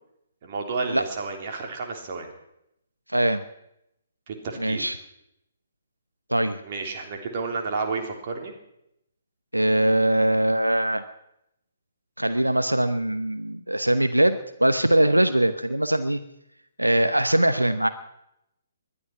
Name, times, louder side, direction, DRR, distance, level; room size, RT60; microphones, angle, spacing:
voice 1, 0.4-2.3 4.3-4.8 6.6-8.5, right 4 dB, 40° right, 2 dB, 3.3 m, -31 dB
voice 2, 4.6-5.0 6.3-6.6 9.5-11.0 12.2-16.2 16.8-17.9, right 1 dB, 85° right, 10 dB, 1.0 m, -22 dB
20.5 x 11.5 x 6.0 m, 0.80 s
figure-of-eight pair, 130°, 0 cm